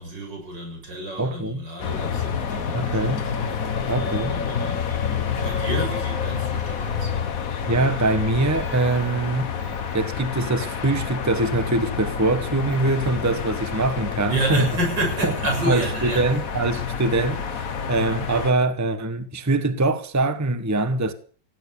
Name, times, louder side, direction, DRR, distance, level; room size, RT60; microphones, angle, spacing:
voice 1, 0.0-3.3 3.8-5.0 5.3-7.2 14.2-16.4, right 2 dB, 85° right, 7.7 m, -30 dB
voice 2, 1.2-1.6 2.7-3.2 3.9-4.3 7.7-9.5 9.9-14.7 15.2-15.3 15.7-17.4 17.9-21.1, right 2 dB, 10° right, 1.0 m, -23 dB
sound 1, 1.8-18.5, left 6 dB, 55° left, 1.7 m, -28 dB
17.5 x 9.1 x 8.7 m
omnidirectional pair, 1.9 m